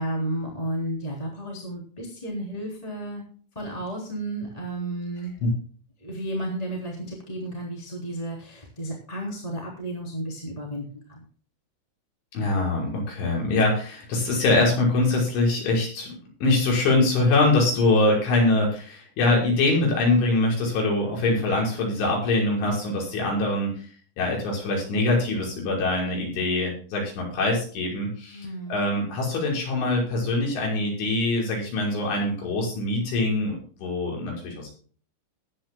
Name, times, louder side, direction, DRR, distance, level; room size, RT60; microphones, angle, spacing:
voice 1, 0.0-3.2 3.5-5.3 6.0-11.2 28.3-28.8, right 1 dB, 10° left, -2 dB, 2.8 m, -32 dB
voice 2, 12.3-23.9 24.2-34.7, left 2 dB, 75° left, -2 dB, 8.1 m, -23 dB
21.0 x 10.0 x 2.3 m, 0.43 s
omnidirectional pair, 5.6 m